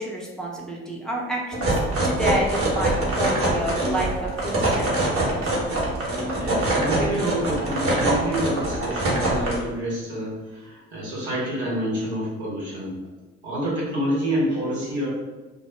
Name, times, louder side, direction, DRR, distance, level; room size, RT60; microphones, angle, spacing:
voice 1, 0.0-5.5, right 1 dB, ahead, -3 dB, 0.5 m, -30 dB
sound 1, 1.5-9.6, right 1 dB, 45° right, 0.9 m, -24 dB
voice 2, 6.2-13.0 13.4-15.1, equal, 85° right, -7 dB, 0.9 m, -28 dB
2.1 x 2.0 x 3.1 m, 1.2 s
hypercardioid pair, 50°, 32 cm